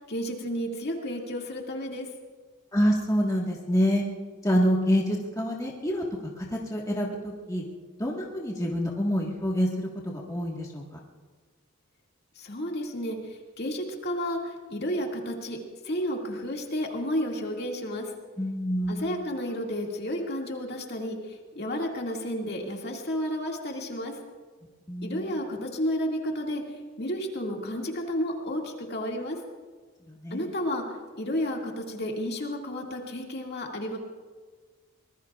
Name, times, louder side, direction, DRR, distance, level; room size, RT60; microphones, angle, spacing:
voice 1, 0.1-2.1 12.4-13.2 13.6-15.6 15.8-18.1 18.9-21.2 21.5-24.1 25.0-26.6 27.0-29.4 30.3-30.8 31.2-34.0, equal, 50° left, 0 dB, 2.2 m, -31 dB
voice 2, 2.7-4.0 4.4-6.0 6.4-7.6 8.0-10.8 18.4-19.2 24.9-25.4 30.1-30.5, equal, 15° left, -3 dB, 1.6 m, -27 dB
24.5 x 20.5 x 2.4 m, 1.5 s
head